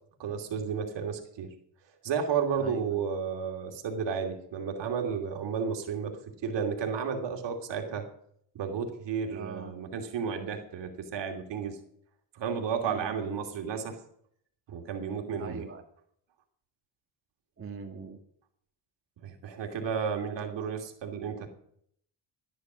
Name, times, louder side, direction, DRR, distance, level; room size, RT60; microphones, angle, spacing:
voice 1, 0.2-1.5 2.0-6.1 6.4-8.1 8.5-11.8 12.3-14.0 14.7-15.7 19.2-21.5, right 6 dB, 65° right, 4 dB, 2.8 m, -32 dB
voice 2, 2.6-3.0 9.3-9.7 12.8-13.4 15.3-15.8 17.6-18.2, right 5 dB, 30° right, 1 dB, 2.0 m, -41 dB
14.0 x 10.0 x 6.2 m, 0.67 s
cardioid pair, 115°, 46 cm